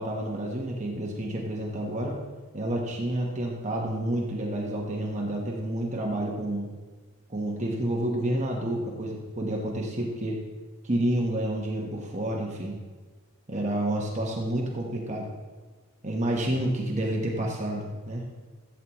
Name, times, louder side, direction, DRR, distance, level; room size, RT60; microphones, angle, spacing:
voice 1, 0.0-2.1 2.5-6.7 7.3-10.4 10.8-12.8 13.5-15.3 16.0-18.3, right 1 dB, 30° right, -1 dB, 1.1 m, -29 dB
15.0 x 8.4 x 3.0 m, 1.3 s
head